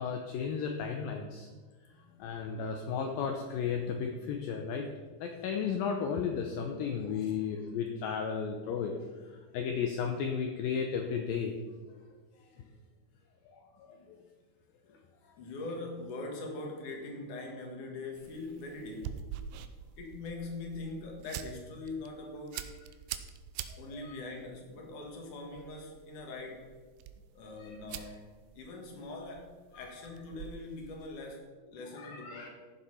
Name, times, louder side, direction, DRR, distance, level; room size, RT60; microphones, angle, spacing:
voice 1, 0.0-1.5 2.2-4.9 5.2-9.0 9.5-11.5 13.5-14.2 23.7-23.8 24.0-24.2 27.6-27.7 29.7-29.9 32.0-32.5, left 6 dB, 75° left, 3 dB, 2.3 m, -34 dB
voice 2, 1.9-2.3 6.9-7.3 11.9-12.8 13.1-13.3 13.9-14.3 14.8-15.0 15.4-19.3 20.0-22.6 23.8-26.7 27.3-32.5, left 2 dB, 55° left, 2 dB, 3.1 m, -43 dB
sound 1, 18.2-31.4, right 10 dB, 90° right, 2.8 m, -47 dB
14.5 x 7.2 x 5.6 m, 1.4 s
omnidirectional pair, 4.7 m